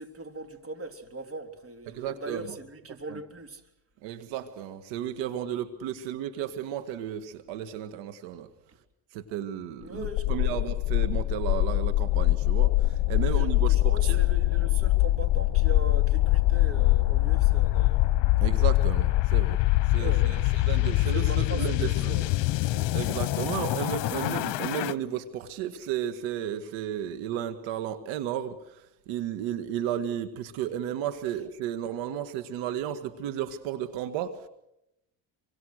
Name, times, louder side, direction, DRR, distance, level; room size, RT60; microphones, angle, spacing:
voice 1, 0.0-3.6 9.8-10.7 13.2-18.0 20.0-22.9, right 2 dB, 30° right, 3.6 m, -40 dB
voice 2, 1.9-2.5 3.1-3.2 4.0-8.5 9.1-14.2 18.4-19.6 19.9-22.1 22.9-34.5, right 10 dB, 85° right, 1.9 m, -33 dB
sound 1, 10.0-24.9, left 17 dB, 70° left, 1.1 m, -24 dB
27.5 x 24.5 x 6.5 m
cardioid pair, 100°, 44 cm